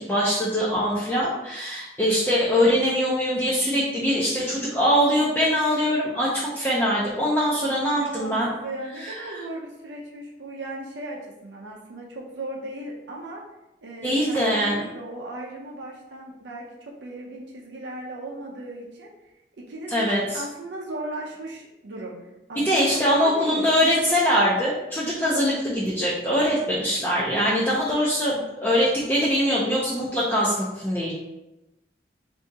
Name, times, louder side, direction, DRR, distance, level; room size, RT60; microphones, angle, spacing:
voice 1, 0.0-8.5 9.0-9.4 14.0-14.8 19.9-20.4 22.6-31.1, equal, 10° left, -7 dB, 0.4 m, -23 dB
voice 2, 7.5-13.4 13.8-19.1 19.6-22.1 22.5-22.8 23.1-23.7, right 1 dB, 75° right, -2 dB, 0.6 m, -37 dB
2.7 x 2.7 x 3.5 m, 0.95 s
head